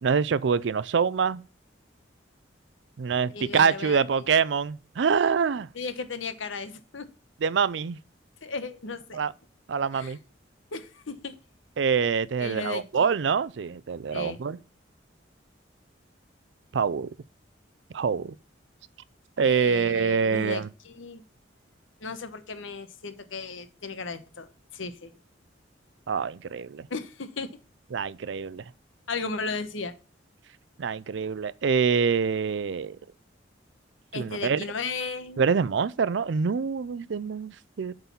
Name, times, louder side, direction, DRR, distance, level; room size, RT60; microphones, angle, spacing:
voice 1, 0.0-1.4 3.0-5.7 7.4-8.0 9.1-9.3 9.7-10.2 11.8-14.6 16.7-17.1 17.9-18.3 19.4-20.7 26.1-26.9 27.9-28.7 30.8-33.0 34.1-34.6 35.4-37.9, right 6 dB, 70° right, 0.4 m, -25 dB
voice 2, 3.3-4.0 5.7-7.1 8.4-9.2 9.9-10.2 10.7-11.4 12.4-13.1 14.1-14.4 19.4-21.2 22.0-25.1 26.9-27.5 29.1-29.9 34.1-35.4, left 4 dB, 90° left, 1.0 m, -35 dB
8.2 x 4.0 x 7.0 m
head